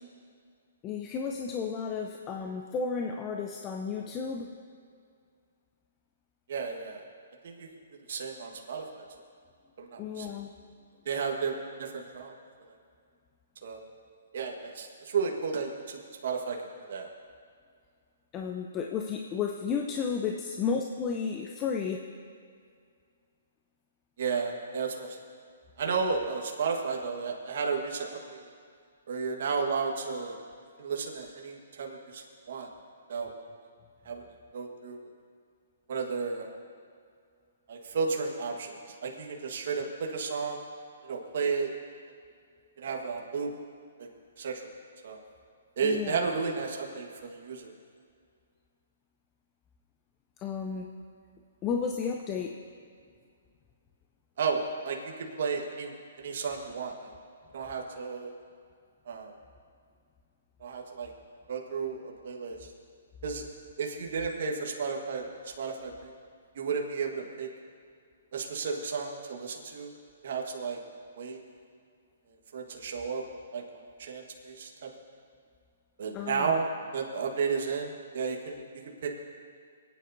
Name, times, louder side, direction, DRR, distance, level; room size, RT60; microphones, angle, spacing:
voice 1, 0.8-4.5 10.0-10.5 18.3-22.0 45.8-46.3 50.4-50.9 51.6-52.6 76.1-76.6, left 6 dB, 25° left, 2 dB, 0.6 m, -33 dB
voice 2, 6.5-7.0 7.4-7.7 8.1-9.0 9.8-10.3 11.0-12.3 13.6-13.8 14.3-16.6 16.9-17.1 24.2-25.2 25.8-28.5 29.1-30.4 30.8-32.7 33.1-33.3 34.0-34.2 34.5-35.0 35.9-36.5 37.7-38.7 39.0-40.6 41.0-41.7 42.8-43.5 44.0-44.1 44.4-44.7 45.0-45.2 45.8-47.7 54.4-55.1 55.4-57.2 57.5-58.3 59.1-59.3 60.6-61.1 61.5-62.7 63.2-63.5 63.8-66.1 66.5-67.5 68.3-69.9 70.2-70.8 71.2-71.4 72.5-73.2 73.5-73.6 74.0-74.9 76.0-76.7 76.9-79.1, right 5 dB, 60° right, 1 dB, 1.4 m, -33 dB
26.5 x 9.3 x 2.7 m, 2.2 s
hypercardioid pair, 145°, 0 cm